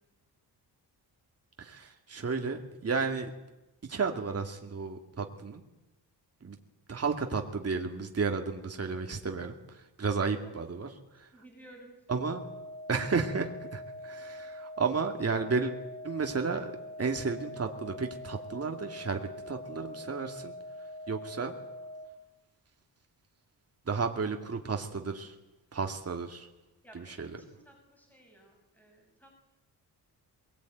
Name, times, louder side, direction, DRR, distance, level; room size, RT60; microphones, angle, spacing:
voice 1, 1.6-3.3 3.8-5.6 6.4-6.6 6.9-10.9 12.1-12.4 12.9-15.7 16.0-16.7 17.0-19.2 19.5-20.5 21.1-21.5 23.9-25.4 25.7-26.5 26.9-27.3, right 4 dB, 35° right, 4 dB, 2.4 m, -32 dB
voice 2, 11.3-11.9 26.8-29.4, right 1 dB, 5° left, 1 dB, 6.1 m, -55 dB
sound 1, 12.1-22.1, left 1 dB, 35° left, 5.5 m, -44 dB
22.5 x 19.0 x 9.3 m, 0.99 s
wide cardioid pair, 120°, 41 cm